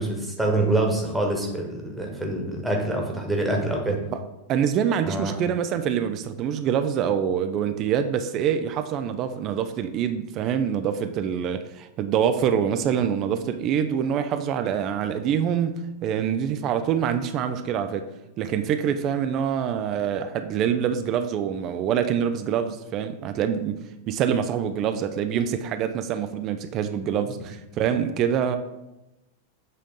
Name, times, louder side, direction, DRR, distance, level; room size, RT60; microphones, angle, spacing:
voice 1, 0.0-4.0 5.0-5.4, right 2 dB, 5° right, 1.2 m, -25 dB
voice 2, 4.5-18.1 18.4-28.6, right 8 dB, 35° right, 0.4 m, -25 dB
7.6 x 3.7 x 3.7 m
figure-of-eight pair, 90°, 0 cm